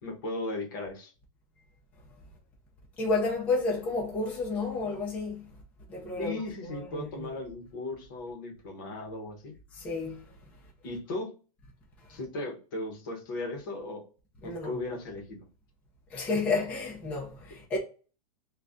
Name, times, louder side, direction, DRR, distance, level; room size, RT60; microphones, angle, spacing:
voice 1, 0.0-1.1 6.2-9.5 10.8-11.3 12.1-14.1 14.4-15.4, left 2 dB, 35° left, 0.9 m, -37 dB
voice 2, 3.0-5.4 5.9-6.3 6.6-7.3 9.7-10.2 14.4-14.8 16.1-17.8, left 3 dB, 5° left, 0.6 m, -31 dB
3.9 x 2.3 x 3.5 m
supercardioid pair, 180°, 19 cm